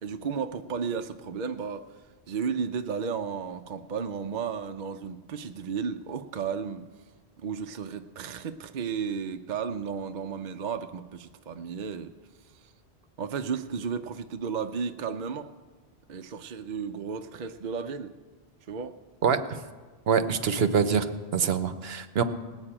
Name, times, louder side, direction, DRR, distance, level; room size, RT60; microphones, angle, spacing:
voice 1, 0.0-1.9 2.3-6.8 7.4-12.1 13.2-15.5 16.1-18.1 18.7-19.0, right 6 dB, 55° right, 7 dB, 0.7 m, -33 dB
voice 2, 20.1-22.2, right 6 dB, 70° right, 10 dB, 1.0 m, -25 dB
18.5 x 6.4 x 8.7 m, 1.4 s
omnidirectional pair, 1.1 m